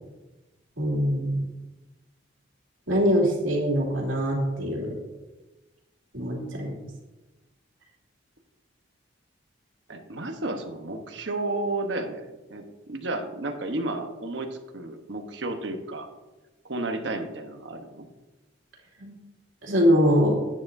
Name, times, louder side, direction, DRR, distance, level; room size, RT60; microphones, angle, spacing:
voice 1, 0.8-1.4 2.9-5.0 6.1-6.7 19.0-19.1 19.6-20.4, equal, 85° right, -1 dB, 2.6 m, -23 dB
voice 2, 9.9-14.5 14.7-16.1 16.6-18.0, right 2 dB, 70° right, 5 dB, 1.0 m, -32 dB
10.5 x 9.6 x 2.7 m, 1.1 s
head